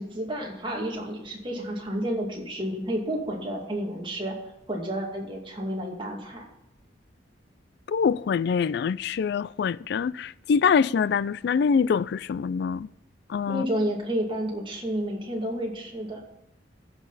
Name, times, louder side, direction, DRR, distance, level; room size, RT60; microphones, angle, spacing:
voice 1, 0.0-4.4 4.7-6.5 13.5-16.2, equal, 30° right, 2.4 m, -30 dB
voice 2, 7.9-12.9 13.3-13.6, left 6 dB, 60° left, 0.3 m, -24 dB
15.0 x 6.0 x 4.1 m
head